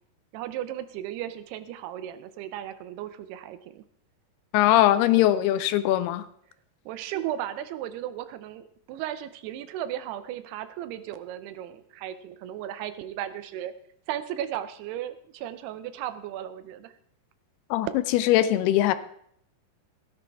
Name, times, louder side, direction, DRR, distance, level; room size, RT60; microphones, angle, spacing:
voice 1, 0.3-3.8 6.9-13.7 14.1-16.9, right 11 dB, 85° right, 12 dB, 2.8 m, -35 dB
voice 2, 4.5-6.2 17.7-17.9 18.1-18.9, left 13 dB, 85° left, 13 dB, 2.6 m, -21 dB
16.5 x 10.0 x 3.5 m, 0.66 s
omnidirectional pair, 4.6 m